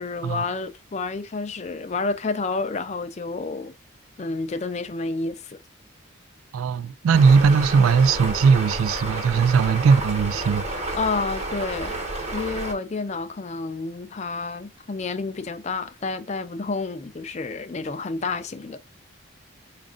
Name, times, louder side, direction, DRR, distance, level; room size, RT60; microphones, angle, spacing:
voice 1, 0.0-3.7 4.2-5.6 10.9-12.0 12.3-18.8, left 3 dB, 35° left, 0.4 m, -29 dB
voice 2, 6.5-10.6, right 5 dB, 85° right, 0.3 m, -19 dB
sound 1, 7.1-12.7, right 1 dB, 35° right, 1.1 m, -31 dB
5.2 x 2.4 x 3.6 m
head